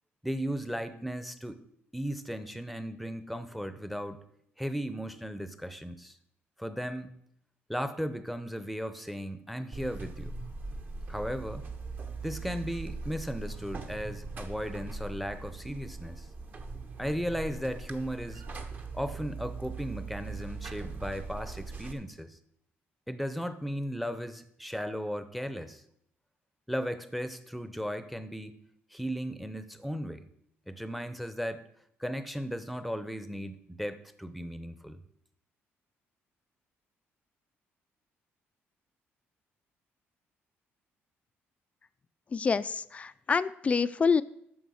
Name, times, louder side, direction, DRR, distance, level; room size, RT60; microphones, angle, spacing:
voice 1, 0.2-1.6 1.9-4.2 4.6-6.2 6.6-7.1 7.7-10.3 11.1-11.7 12.2-16.3 17.0-18.4 18.9-22.4 23.1-25.8 26.7-28.6 28.9-30.3 30.7-31.6 32.0-35.0, equal, ahead, 12 dB, 0.7 m, -36 dB
Buzz, 9.7-21.9, right 3 dB, 40° right, 1.1 m, -40 dB
voice 2, 42.3-44.2, left 5 dB, 30° left, 16 dB, 0.3 m, -27 dB
9.4 x 6.4 x 6.3 m, 0.73 s
cardioid pair, 125°, 5 cm